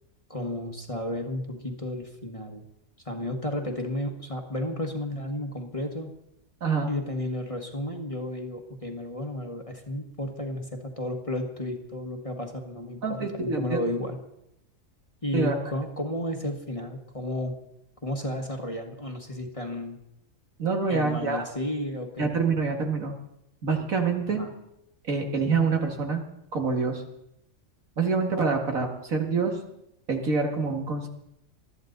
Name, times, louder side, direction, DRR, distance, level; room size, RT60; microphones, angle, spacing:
voice 1, 0.3-2.6 3.0-6.1 6.9-14.2 15.2-17.6 18.0-20.0 20.9-22.3 24.3-24.5, left 1 dB, 25° left, 3 dB, 1.5 m, -33 dB
voice 2, 13.0-13.8 15.3-15.6 20.6-21.4 22.2-23.1 23.6-24.4 25.0-26.2 26.5-27.0 28.0-29.6 30.1-31.1, right 4 dB, 70° right, 3 dB, 2.4 m, -26 dB
21.0 x 13.5 x 4.0 m, 0.81 s
omnidirectional pair, 1.5 m